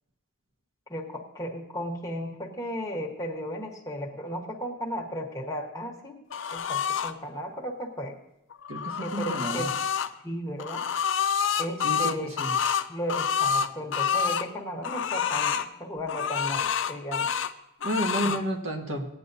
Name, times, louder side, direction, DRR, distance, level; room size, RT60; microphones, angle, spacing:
voice 1, 0.9-6.2 6.5-8.2 9.0-9.7 10.2-10.8 11.6-12.5 12.9-17.3 18.2-18.4, equal, 15° left, -1 dB, 1.3 m, -35 dB
sound 1, 6.3-7.1 8.5-10.1 10.6-14.5 14.8-15.7 16.1-17.5 17.8-18.4, left 7 dB, 65° left, 0.5 m, -28 dB
voice 2, 8.7-9.7 11.8-12.5 17.8-19.1, right 1 dB, 85° right, 2 dB, 1.6 m, -31 dB
17.5 x 10.0 x 2.7 m, 0.83 s
head